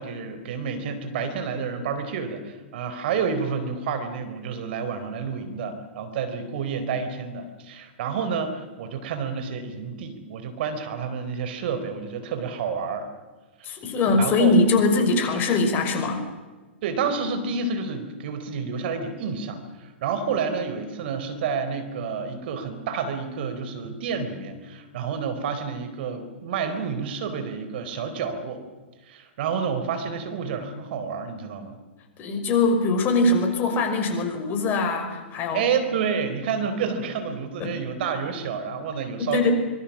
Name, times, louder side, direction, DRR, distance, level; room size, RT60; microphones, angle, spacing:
voice 1, 0.0-13.1 13.6-13.7 14.2-14.5 15.3-15.4 16.8-28.6 29.1-31.8 35.5-39.5, right 6 dB, 55° right, 9 dB, 4.3 m, -29 dB
voice 2, 13.6-16.2 32.2-35.6 37.6-38.1 39.2-39.5, left 3 dB, 30° left, 4 dB, 5.8 m, -22 dB
25.0 x 23.0 x 7.5 m, 1.3 s
hypercardioid pair, 115°, 6 cm